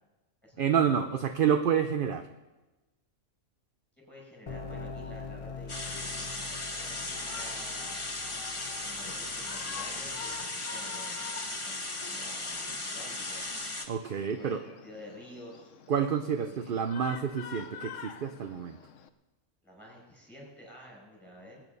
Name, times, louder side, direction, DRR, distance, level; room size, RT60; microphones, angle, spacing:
voice 1, 0.6-2.3 13.9-14.6 15.9-18.8, right 8 dB, 50° right, 8 dB, 0.8 m, -28 dB
voice 2, 4.1-8.0 8.8-11.3 11.6-13.4 14.2-15.8 16.5-16.8 19.6-21.6, left 1 dB, ahead, -1 dB, 6.1 m, -50 dB
sound 1, 4.5-10.5, left 4 dB, 40° left, 0.5 m, -44 dB
sound 2, 5.7-13.9, left 2 dB, 25° left, 1.4 m, -36 dB
Shout, 7.0-19.1, left 7 dB, 75° left, 1.1 m, -47 dB
23.0 x 9.2 x 5.4 m, 1.1 s
omnidirectional pair, 1.3 m